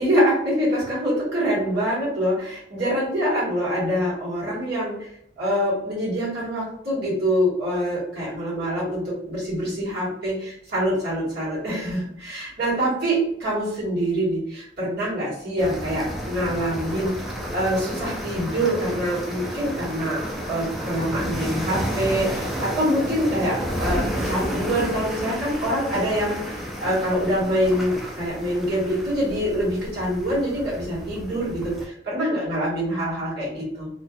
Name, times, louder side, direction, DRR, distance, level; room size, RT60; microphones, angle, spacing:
voice 1, 0.0-5.1 5.4-17.1 17.5-33.9, equal, 60° right, -8 dB, 1.5 m, -25 dB
sound 1, 15.6-31.9, equal, ahead, 0.3 m, -31 dB
2.5 x 2.3 x 2.4 m, 0.73 s
head